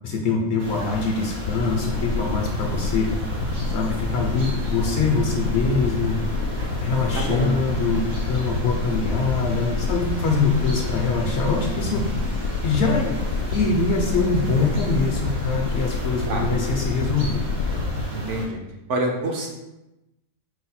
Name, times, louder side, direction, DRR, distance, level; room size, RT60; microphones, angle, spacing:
voice 1, 0.0-3.1 3.7-6.2 6.8-12.1 12.6-13.1 13.5-17.4, left 4 dB, 65° left, 0 dB, 0.7 m, -24 dB
sound 1, 0.6-18.5, left 1 dB, 80° right, 1.6 m, -34 dB
sound 2, 1.4-18.0, left 3 dB, 90° left, 1.0 m, -28 dB
voice 2, 7.2-7.5 16.3-16.5 18.1-18.6 18.9-19.5, right 2 dB, 65° right, 1 dB, 0.9 m, -26 dB
4.5 x 2.1 x 4.2 m, 0.95 s
omnidirectional pair, 1.5 m